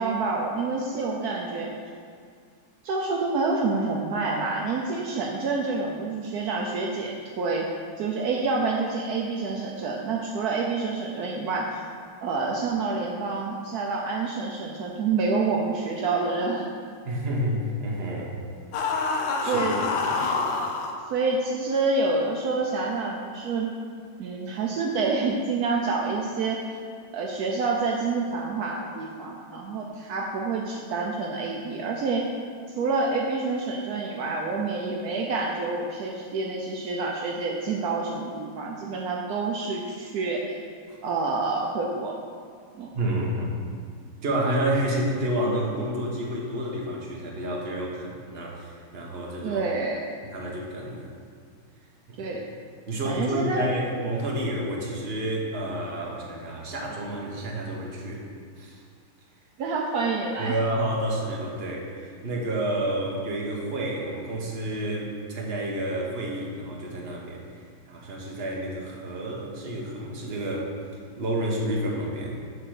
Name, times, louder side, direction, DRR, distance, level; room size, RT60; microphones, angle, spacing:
voice 1, 0.0-1.7 2.8-7.7 8.0-11.8 12.2-16.7 19.4-19.8 21.1-23.7 24.2-26.8 27.1-32.2 32.7-40.6 41.0-42.1 42.8-42.9 49.4-50.0 52.2-52.5 53.0-53.7 59.6-60.6, right 3 dB, 80° right, -1 dB, 0.8 m, -28 dB
voice 2, 17.0-18.4 19.0-19.6 20.1-20.3 40.9-41.0 42.9-43.5 44.2-49.6 50.2-51.1 52.1-52.3 52.9-58.2 58.6-58.8 60.4-67.6 67.9-70.7 71.2-72.4, right 1 dB, 40° right, -2 dB, 1.0 m, -29 dB
sound 1, 18.7-20.9, left 4 dB, 70° left, 1.3 m, -26 dB
7.6 x 3.8 x 6.3 m, 2.1 s
omnidirectional pair, 2.3 m